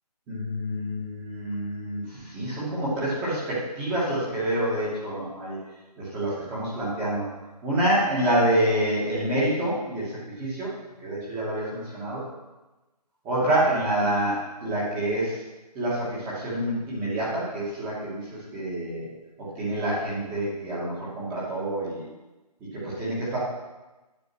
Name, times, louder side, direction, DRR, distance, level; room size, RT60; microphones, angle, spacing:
voice 1, 0.3-5.6 6.0-7.3 7.6-10.7 11.0-12.2 13.2-15.4 15.7-19.1 19.6-22.0 22.7-23.4, right 1 dB, 10° right, -8 dB, 2.4 m, -27 dB
9.6 x 7.1 x 6.3 m, 1.1 s
hypercardioid pair, 165°, 21 cm